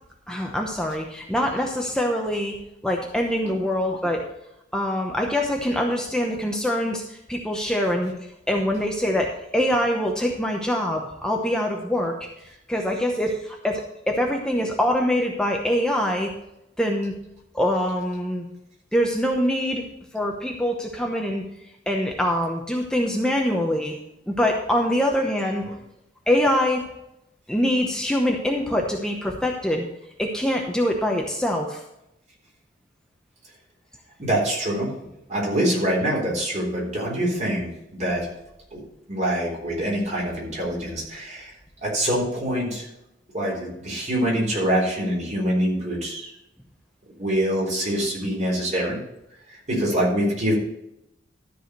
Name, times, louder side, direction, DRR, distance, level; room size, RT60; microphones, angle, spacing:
voice 1, 0.3-2.5 2.8-4.2 4.7-8.1 8.5-12.2 12.7-16.3 16.8-17.1 17.5-18.5 18.9-19.8 20.1-21.4 21.9-23.9 24.3-25.6 26.3-26.8 27.5-29.8 30.2-31.8, equal, 5° left, 0 dB, 0.9 m, -24 dB
voice 2, 34.2-34.9 35.3-37.7 38.0-38.3 38.7-38.8 39.1-41.5 41.8-42.9 43.3-46.3 47.2-49.0 49.7-50.6, right 1 dB, 40° right, -3 dB, 3.9 m, -24 dB
13.0 x 4.9 x 6.7 m, 0.84 s
head